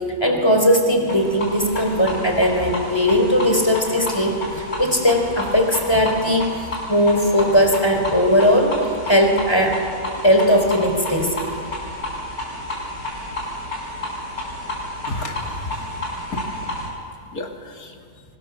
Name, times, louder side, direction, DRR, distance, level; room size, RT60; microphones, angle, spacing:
voice 1, 0.2-6.5 6.9-9.8 10.2-11.3, equal, 15° left, 3 dB, 3.6 m, -18 dB
sound 1, 1.0-16.9, left 1 dB, 85° left, 7.0 m, -31 dB
voice 2, 15.1-16.8 17.1-18.2, left 2 dB, 70° left, 2 dB, 2.8 m, -33 dB
25.0 x 24.5 x 7.1 m, 2.4 s
omnidirectional pair, 1.6 m